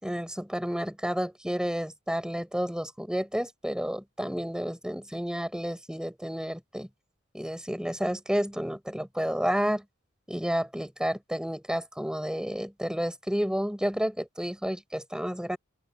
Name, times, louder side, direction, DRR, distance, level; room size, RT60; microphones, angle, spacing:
voice 1, 0.0-6.9 7.3-9.8 10.3-15.6, equal, 5° right, 5.0 m, -31 dB
open air
head